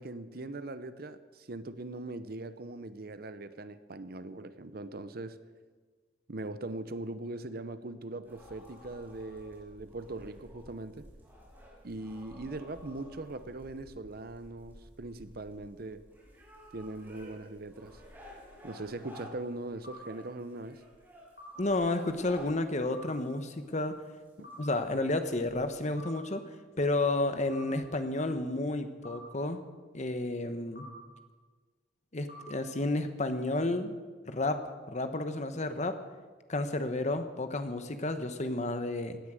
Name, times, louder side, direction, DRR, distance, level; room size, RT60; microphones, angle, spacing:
voice 1, 0.0-5.4 6.3-11.1 11.8-16.1 16.7-18.0 18.6-20.8 24.4-24.5, right 2 dB, 55° right, 0.8 m, -41 dB
sound 1, 8.2-25.8, left 1 dB, 10° right, 6.0 m, -53 dB
sound 2, 19.8-20.0 21.4-21.5 22.9-23.1 24.4-24.6 26.0-26.1 27.5-27.6 29.0-29.2 30.8-30.9 32.3-32.4, left 1 dB, 55° left, 4.8 m, -47 dB
voice 2, 21.6-24.0 24.6-26.5 26.8-29.6 29.9-30.9 32.1-34.0 34.3-36.0 36.5-39.2, left 2 dB, 40° left, 1.1 m, -31 dB
17.0 x 10.0 x 7.7 m
head